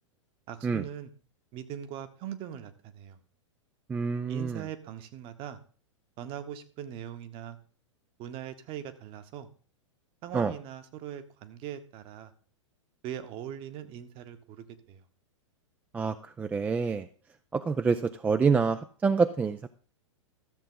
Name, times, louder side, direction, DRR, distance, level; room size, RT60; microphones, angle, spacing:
voice 1, 0.5-1.1 1.5-3.2 4.3-5.6 6.2-7.6 8.2-9.5 10.2-12.3 13.0-15.0, right 10 dB, 35° right, 10 dB, 1.1 m, -41 dB
voice 2, 3.9-4.6 10.3-10.5 15.9-17.1 17.5-19.7, right 5 dB, 10° right, 10 dB, 0.4 m, -27 dB
13.5 x 7.4 x 3.8 m, 0.42 s
figure-of-eight pair, 100°, 16 cm